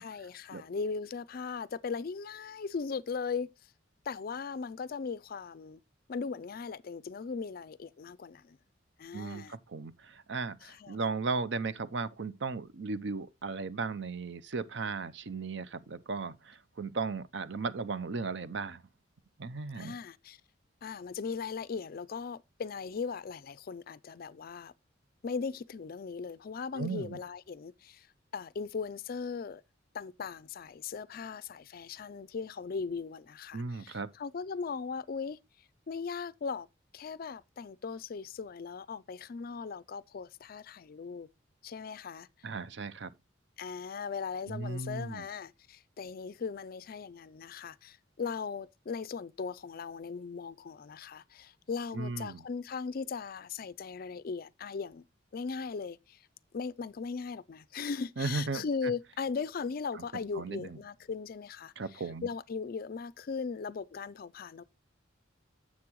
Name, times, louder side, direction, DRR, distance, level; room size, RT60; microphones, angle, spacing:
voice 1, 0.0-3.5 4.1-5.8 6.1-8.6 9.0-9.6 10.6-11.0 19.7-20.4 20.8-24.7 25.2-28.1 28.3-29.6 29.9-35.4 35.9-36.7 36.9-41.3 41.6-42.3 43.6-55.0 55.3-56.2 56.5-61.7 62.2-64.6, left 5 dB, 50° left, 0.4 m, -38 dB
voice 2, 9.1-18.8 19.4-19.9 26.7-27.2 33.5-34.1 42.4-43.1 44.5-45.3 51.9-52.4 58.2-58.9 59.9-60.0 60.3-60.8 61.8-62.3, right 4 dB, 60° right, 0.6 m, -36 dB
9.7 x 7.5 x 3.0 m
head